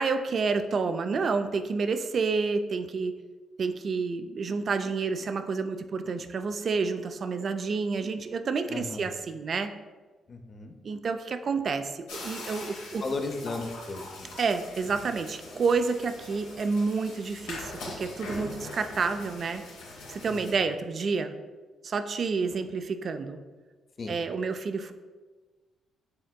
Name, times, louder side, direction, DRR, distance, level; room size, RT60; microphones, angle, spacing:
voice 1, 0.0-3.2 3.6-9.7 10.8-13.0 14.4-19.6 20.1-21.3 21.8-23.4 24.1-24.9, right 4 dB, 55° right, 8 dB, 0.3 m, -29 dB
voice 2, 8.7-9.1 10.3-10.7 13.0-14.3 20.3-20.4 24.0-24.2, left 3 dB, 50° left, 5 dB, 0.6 m, -35 dB
sound 1, 12.1-20.5, left 2 dB, 90° left, 0.9 m, -42 dB
6.3 x 3.5 x 2.2 m, 1.3 s
supercardioid pair, 50°, 0 cm